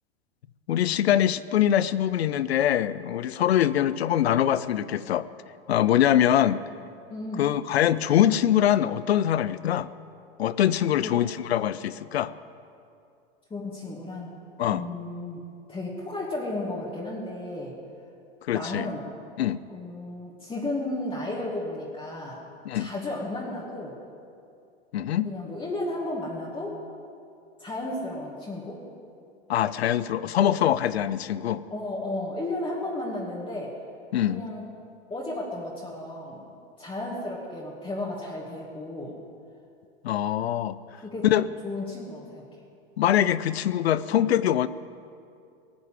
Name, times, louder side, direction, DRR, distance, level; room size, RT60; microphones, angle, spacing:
voice 1, 0.7-5.3 5.7-6.6 7.4-9.9 10.4-12.3 14.6-14.8 18.5-18.9 19.4-19.6 22.6-22.9 24.9-25.3 29.5-31.6 34.1-34.4 40.0-40.8 41.2-41.5 43.0-44.7, left 11 dB, 80° left, 16 dB, 0.6 m, -23 dB
voice 2, 7.1-7.5 11.0-11.1 13.5-14.4 14.7-15.4 15.7-17.7 18.5-19.1 19.7-22.4 22.7-24.0 25.2-26.8 27.6-28.8 31.7-33.7 34.3-34.7 35.1-36.4 36.8-39.2 40.9-41.3 41.6-42.4 44.1-44.3, left 2 dB, 15° left, -4 dB, 2.3 m, -33 dB
18.0 x 6.6 x 9.0 m, 2.5 s
hypercardioid pair, 95°, 31 cm